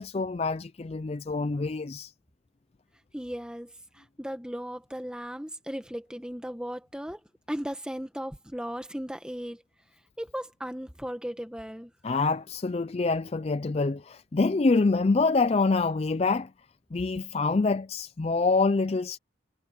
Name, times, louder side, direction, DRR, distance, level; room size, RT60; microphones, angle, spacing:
voice 1, 0.0-2.1 12.0-16.5 16.9-19.2, left 3 dB, 30° left, 0.4 m, -26 dB
voice 2, 3.1-7.2 7.5-9.6 10.2-11.9, equal, 5° right, 1.6 m, -36 dB
head